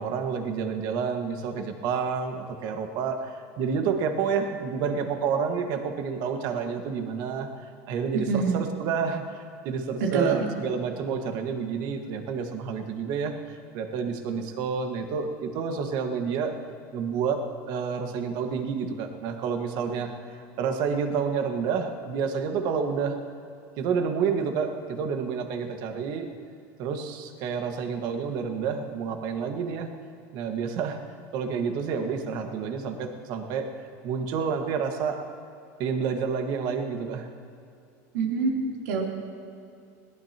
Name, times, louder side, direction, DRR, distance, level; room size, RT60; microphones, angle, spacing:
voice 1, 0.0-16.5 16.9-17.4 17.7-23.2 23.8-26.3 26.8-29.9 30.3-31.0 31.3-33.7 34.0-35.2 35.8-37.3, right 6 dB, 55° right, 5 dB, 1.6 m, -29 dB
voice 2, 10.1-10.4 38.1-39.0, right 4 dB, 90° right, -2 dB, 3.3 m, -25 dB
21.0 x 18.0 x 3.0 m, 2.5 s
supercardioid pair, 140°, 9 cm